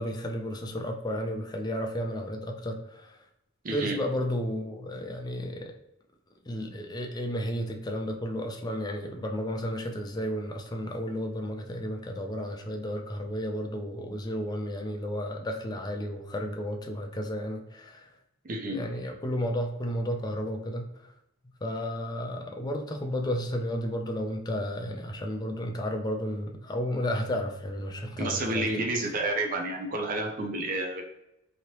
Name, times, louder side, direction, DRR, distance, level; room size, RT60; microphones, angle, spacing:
voice 1, 0.0-3.2 3.7-5.7 6.5-18.1 18.7-20.9 21.6-28.9, equal, 20° left, 3 dB, 0.4 m, -32 dB
voice 2, 3.6-4.0 18.4-18.8 28.2-31.0, right 2 dB, 40° right, 1 dB, 0.5 m, -30 dB
3.0 x 2.8 x 2.9 m, 0.83 s
head